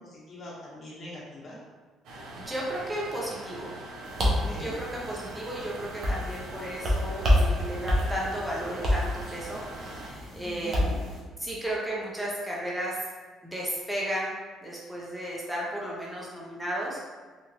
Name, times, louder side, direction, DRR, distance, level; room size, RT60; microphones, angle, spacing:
voice 1, 0.0-1.6 4.2-4.7 10.4-11.0, left 1 dB, 35° left, -6 dB, 1.0 m, -43 dB
sound 1, 2.0-10.1, right 2 dB, 75° right, 0.7 m, -42 dB
voice 2, 2.3-3.7 4.4-11.0 11.4-13.0 13.4-14.3 14.6-17.1, right 1 dB, 5° right, -5 dB, 0.5 m, -34 dB
sound 2, 4.0-11.2, left 1 dB, 40° right, 0.7 m, -29 dB
3.0 x 2.4 x 2.9 m, 1.4 s
cardioid pair, 135°, 0 cm